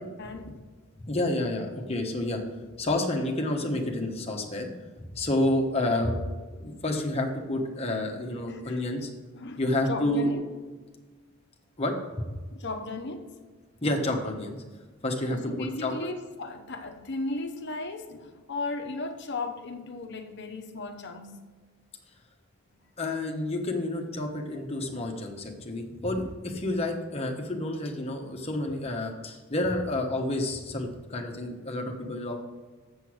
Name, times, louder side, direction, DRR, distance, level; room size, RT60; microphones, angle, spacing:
voice 1, 0.2-0.5 8.5-8.8 9.3-10.4 12.5-13.3 15.3-21.3, left 2 dB, 50° left, 6 dB, 0.9 m, -36 dB
voice 2, 1.0-2.4 2.8-4.7 5.0-6.2 6.5-9.1 9.6-10.3 11.8-12.3 13.8-14.6 15.0-15.9 23.0-32.4, left 1 dB, 30° left, 1 dB, 1.1 m, -29 dB
7.1 x 6.8 x 6.3 m, 1.4 s
head